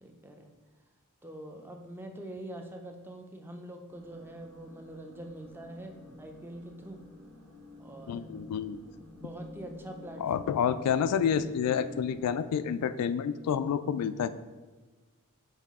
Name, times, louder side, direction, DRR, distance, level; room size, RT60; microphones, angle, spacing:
voice 1, 0.0-0.5 1.2-7.0 7.8-8.3 9.1-10.2, right 1 dB, 10° right, 4 dB, 0.5 m, -44 dB
sound 1, 3.9-12.3, left 1 dB, 75° right, 1.7 m, -50 dB
voice 2, 8.1-8.8 10.2-14.3, left 7 dB, 85° left, 15 dB, 0.3 m, -29 dB
5.6 x 4.8 x 3.6 m, 1.3 s
head